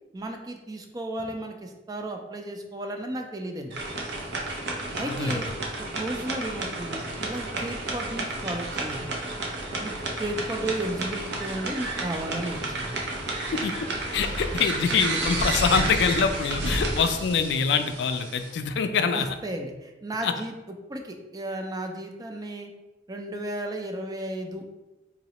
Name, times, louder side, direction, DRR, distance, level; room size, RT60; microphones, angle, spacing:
voice 1, 0.1-3.8 5.0-5.5 5.9-9.1 9.8-9.9 10.2-13.0 19.1-20.5 20.9-22.7 23.1-24.6, right 1 dB, 20° right, 4 dB, 0.4 m, -34 dB
sound 1, 3.7-18.5, right 2 dB, 75° right, 0.7 m, -31 dB
voice 2, 5.0-5.4 13.5-13.7 14.1-19.3 20.2-20.3, left 5 dB, 75° left, 8 dB, 0.3 m, -25 dB
3.9 x 3.1 x 2.9 m, 1.1 s
head